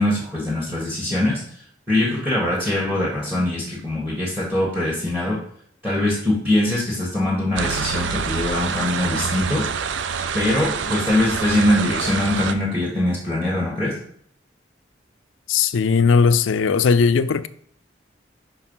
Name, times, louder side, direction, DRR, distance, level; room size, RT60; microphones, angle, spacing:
voice 1, 0.0-1.4 1.9-5.4 5.8-9.6 10.3-13.9, left 1 dB, 5° right, 1.4 m, -22 dB
sound 1, 7.6-12.5, right 6 dB, 75° right, 0.5 m, -26 dB
voice 2, 15.5-17.5, left 5 dB, 85° left, 0.4 m, -18 dB
5.3 x 4.7 x 5.4 m
head